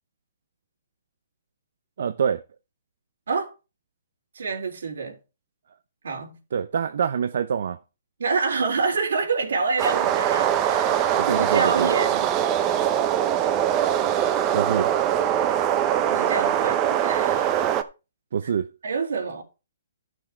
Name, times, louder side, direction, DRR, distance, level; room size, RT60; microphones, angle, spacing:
voice 1, 2.0-2.4 6.5-7.8 11.2-11.9 14.5-14.9 18.3-18.7, right 7 dB, 60° right, 0.6 m, -25 dB
voice 2, 4.4-5.2 6.0-6.4 8.2-12.3 16.1-17.6 18.8-19.4, right 4 dB, 80° right, 3.6 m, -27 dB
sound 1, 9.8-17.8, right 10 dB, 20° right, 0.7 m, -22 dB
12.0 x 6.2 x 4.5 m
hypercardioid pair, 170°, 0 cm